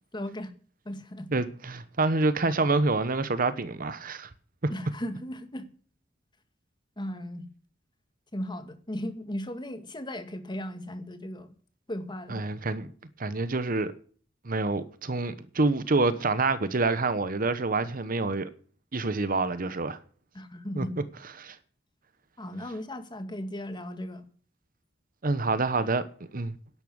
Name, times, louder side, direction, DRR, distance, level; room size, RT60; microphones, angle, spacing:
voice 1, 0.1-0.5 0.9-1.3 4.7-5.7 7.0-7.5 8.3-11.5 11.9-12.4 20.3-21.0 22.4-24.3, left 1 dB, 25° left, 2.0 m, -36 dB
voice 2, 1.3-4.3 4.6-4.7 12.3-12.9 13.2-13.9 14.4-18.5 18.9-20.0 20.8-20.9 21.4-21.6 25.2-26.0 26.3-26.6, right 3 dB, 50° right, 1.0 m, -27 dB
11.5 x 11.0 x 6.4 m
head